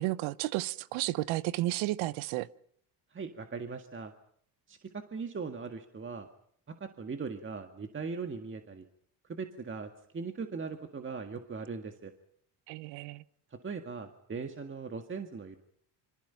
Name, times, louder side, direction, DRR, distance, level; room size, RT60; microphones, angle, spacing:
voice 1, 0.0-2.5 12.7-13.2, right 17 dB, 80° right, 1.0 m, -32 dB
voice 2, 3.1-4.1 4.7-6.3 6.7-8.9 9.2-12.1 13.5-15.6, right 5 dB, 25° right, 1.9 m, -39 dB
27.0 x 25.0 x 5.8 m
cardioid pair, 115°, 46 cm